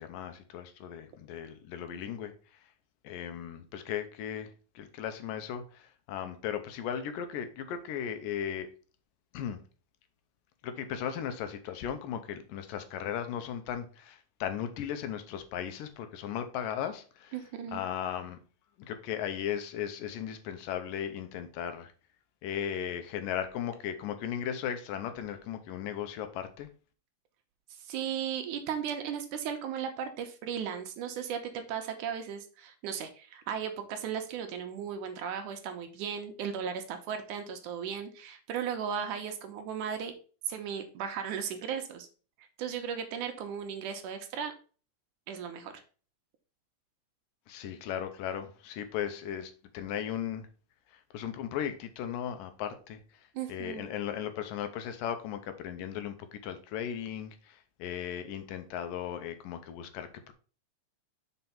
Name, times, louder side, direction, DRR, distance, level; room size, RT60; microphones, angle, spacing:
voice 1, 0.0-2.7 3.0-8.7 9.3-9.6 10.6-17.4 17.7-18.4 18.8-21.9 22.4-26.7 47.5-50.5 50.9-60.3, left 9 dB, 80° left, 2.5 m, -37 dB
voice 2, 17.3-17.8 27.7-40.1 40.5-42.1 42.6-44.5 45.3-45.8 53.4-53.8, right 8 dB, 75° right, 2.2 m, -36 dB
6.0 x 4.4 x 5.5 m
omnidirectional pair, 3.8 m